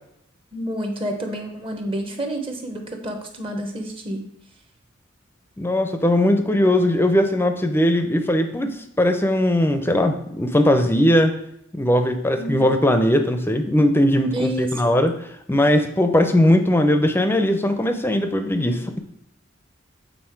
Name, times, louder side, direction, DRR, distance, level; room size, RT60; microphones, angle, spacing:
voice 1, 0.5-4.3 12.3-12.6 14.3-15.0, equal, 30° right, 4 dB, 1.0 m, -29 dB
voice 2, 5.6-11.3 11.7-15.1 15.5-19.0, left 1 dB, 10° left, 7 dB, 0.6 m, -19 dB
7.6 x 4.2 x 4.5 m, 0.74 s
head